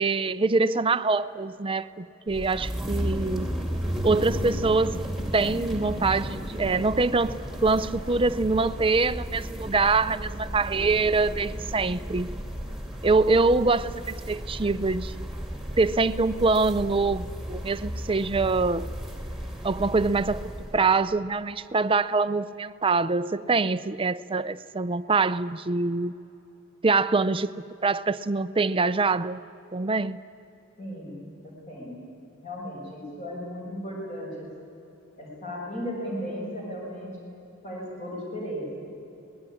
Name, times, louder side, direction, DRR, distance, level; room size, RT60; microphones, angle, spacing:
voice 1, 0.0-3.5 4.0-5.0 5.3-12.3 13.0-15.3 15.8-18.9 19.6-20.4 20.7-26.1 26.8-27.5 27.8-29.4 29.7-30.2, right 3 dB, 25° right, 13 dB, 0.6 m, -24 dB
sound 1, 2.3-20.8, equal, ahead, 2.6 m, -34 dB
voice 2, 30.8-32.0 32.4-34.5 35.2-37.1 37.6-38.8, equal, 35° left, -4 dB, 6.3 m, -36 dB
24.5 x 19.5 x 10.0 m, 2.9 s
head